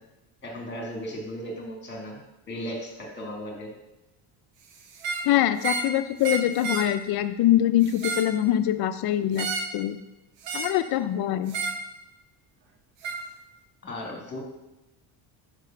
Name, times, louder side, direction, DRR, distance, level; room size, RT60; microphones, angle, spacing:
voice 1, 0.4-2.2 2.5-3.7 13.8-14.4, equal, 25° left, 0 dB, 1.9 m, -36 dB
sound 1, 4.9-5.3 5.6-5.9 6.2-6.9 7.8-8.3 9.4-9.8 10.4-10.8 11.5-11.8 13.0-13.2, right 4 dB, 70° right, 1.1 m, -31 dB
voice 2, 5.3-9.5 9.7-10.0 10.5-11.6, left 12 dB, 55° left, 11 dB, 0.6 m, -23 dB
5.3 x 4.9 x 5.8 m, 1.0 s
cardioid pair, 145°, 45 cm